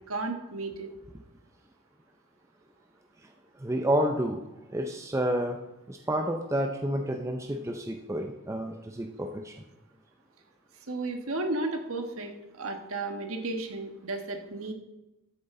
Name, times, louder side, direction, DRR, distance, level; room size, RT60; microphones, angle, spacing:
voice 1, 0.1-0.9 10.9-12.3 12.6-14.7, right 2 dB, 80° right, 4 dB, 1.4 m, -33 dB
voice 2, 3.6-4.4 4.7-5.6 5.9-9.6, right 1 dB, 15° right, 4 dB, 0.5 m, -29 dB
13.5 x 8.1 x 3.8 m, 0.98 s
head